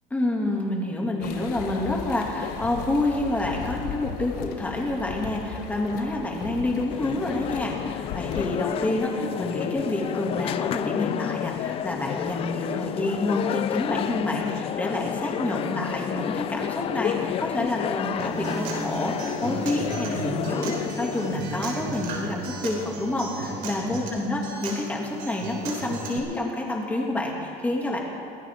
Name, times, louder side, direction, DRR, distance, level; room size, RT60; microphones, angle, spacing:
voice 1, 0.1-28.0, left 2 dB, 10° left, -1 dB, 2.6 m, -28 dB
sound 1, 1.2-8.5, left 8 dB, 65° left, 1.4 m, -36 dB
sound 2, 6.9-21.4, left 10 dB, 35° left, 0.4 m, -30 dB
Acoustic guitar, 18.2-26.2, right 3 dB, 60° right, 4.0 m, -34 dB
24.0 x 16.0 x 3.8 m, 2.3 s
cardioid pair, 145°, 17 cm